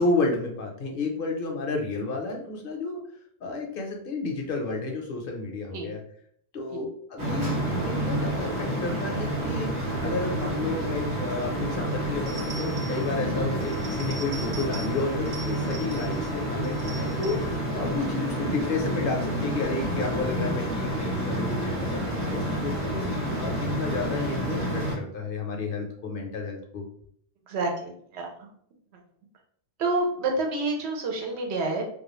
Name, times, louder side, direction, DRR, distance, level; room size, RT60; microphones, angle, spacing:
voice 1, 0.0-3.0 3.4-6.0 6.5-23.0 23.4-26.8, left 3 dB, 60° left, 1 dB, 0.7 m, -31 dB
sound 1, 7.2-24.9, right 1 dB, 45° right, 0.8 m, -29 dB
sound 2, 12.3-13.1 13.6-15.0 15.3-16.3 16.6-17.5, right 4 dB, 25° right, 0.4 m, -43 dB
voice 2, 27.5-28.5 29.8-31.8, right 2 dB, 85° right, 2 dB, 0.9 m, -29 dB
2.3 x 2.2 x 3.0 m, 0.64 s
omnidirectional pair, 1.1 m